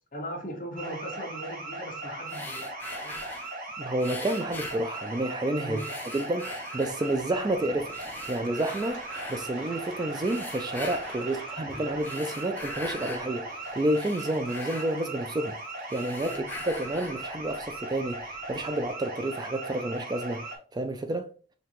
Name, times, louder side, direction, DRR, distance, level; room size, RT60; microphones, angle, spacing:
voice 1, 0.1-3.2 5.6-5.9 11.2-11.4 16.3-16.5, equal, 45° left, 1.3 m, -39 dB
sound 1, 0.8-20.6, right 2 dB, 45° right, 1.0 m, -38 dB
sound 2, 2.3-3.6 4.0-5.4 5.7-7.3 7.9-9.5 10.2-11.3 11.9-13.3 13.7-15.5 15.8-17.3, left 2 dB, 10° left, 0.6 m, -42 dB
voice 2, 3.8-5.8 6.1-8.0 8.3-9.0 9.3-15.6 15.9-21.3, right 1 dB, 20° right, 0.3 m, -30 dB
sound 3, 7.1-18.9, right 1 dB, 80° right, 2.2 m, -48 dB
5.6 x 2.7 x 3.0 m
head